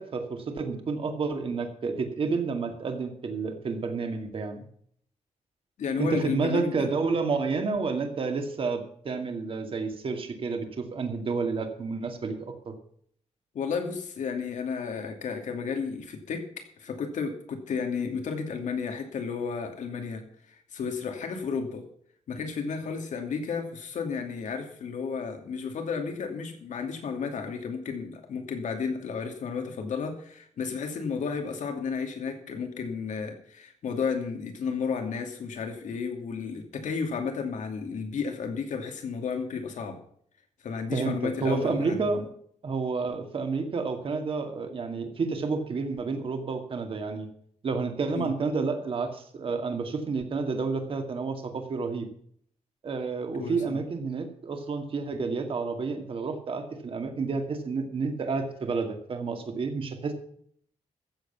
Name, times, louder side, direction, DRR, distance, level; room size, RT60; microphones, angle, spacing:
voice 1, 0.0-4.7 6.0-12.3 12.7-12.8 40.9-41.1 41.4-42.2 42.6-47.3 47.6-52.1 52.8-60.1, right 4 dB, 45° right, 5 dB, 2.2 m, -30 dB
voice 2, 5.8-6.9 13.5-21.8 22.3-40.0 40.6-42.3 48.1-48.3 53.4-53.8, left 5 dB, 90° left, 4 dB, 2.6 m, -32 dB
14.5 x 8.0 x 5.7 m, 0.63 s
wide cardioid pair, 170°, 12 cm